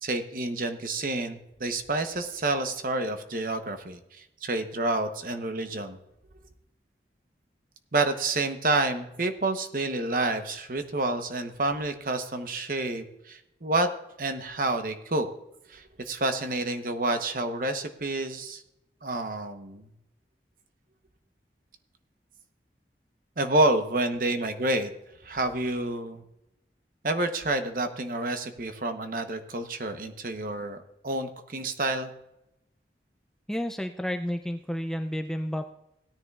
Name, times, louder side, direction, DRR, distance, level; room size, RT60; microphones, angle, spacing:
voice 1, 0.0-6.0 7.9-13.9 14.2-15.3 15.7-18.6 19.0-19.9 23.4-24.9 25.2-26.2 27.0-32.1, right 2 dB, 50° right, 7 dB, 0.9 m, -29 dB
voice 2, 33.5-35.7, equal, 5° left, 6 dB, 0.3 m, -31 dB
17.5 x 9.9 x 2.4 m, 0.86 s
head